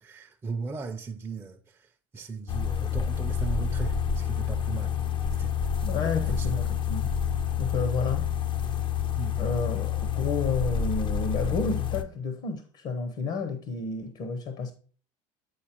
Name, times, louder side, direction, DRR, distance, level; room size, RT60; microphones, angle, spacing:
voice 1, 0.0-1.6 2.1-5.0 5.3-5.5 6.3-6.6 9.2-9.4, right 4 dB, 15° right, 0.6 m, -37 dB
sound 1, 2.5-12.0, left 8 dB, 30° left, 0.6 m, -28 dB
voice 2, 5.8-7.1 7.6-8.3 9.4-14.7, left 4 dB, 50° left, 0.9 m, -31 dB
8.3 x 4.2 x 3.0 m
supercardioid pair, 110°, 16 cm